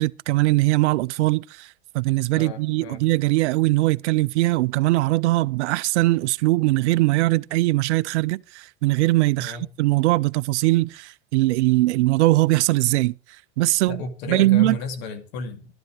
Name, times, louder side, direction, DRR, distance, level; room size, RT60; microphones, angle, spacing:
voice 1, 0.0-13.1 13.6-14.0 14.3-14.8, right 19 dB, 80° right, 0.5 m, -21 dB
voice 2, 2.3-3.0 9.4-9.7 13.9-15.7, left 3 dB, 65° left, 2.4 m, -33 dB
12.0 x 10.5 x 4.7 m
supercardioid pair, 130°, 34 cm